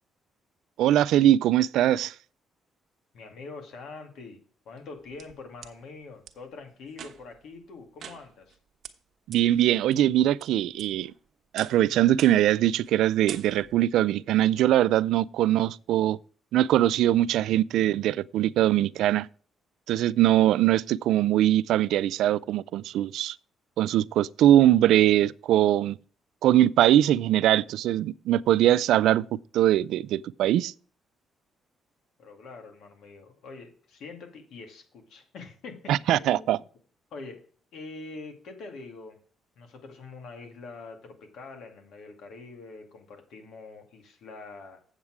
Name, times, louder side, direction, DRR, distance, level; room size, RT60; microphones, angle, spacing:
voice 1, 0.8-2.1 9.3-11.1 11.5-16.2 16.5-19.3 19.9-23.4 23.8-26.0 26.4-29.2 29.5-30.7 35.9-36.6, right 13 dB, 85° right, 0.3 m, -22 dB
voice 2, 3.1-4.4 4.7-8.6 32.2-36.6 37.1-37.5 37.7-39.2 39.6-44.8, left 3 dB, 80° left, 2.3 m, -44 dB
sound 1, 4.8-5.7 6.3-6.4 6.9-7.4 8.0-8.6 8.8-8.9 9.3-9.4 9.9-10.4 10.8-11.2 11.6-11.8 12.2-12.5 12.8-13.0 13.3-13.8, right 8 dB, 60° right, 1.0 m, -44 dB
8.1 x 7.2 x 4.8 m
cardioid pair, 90°, 0 cm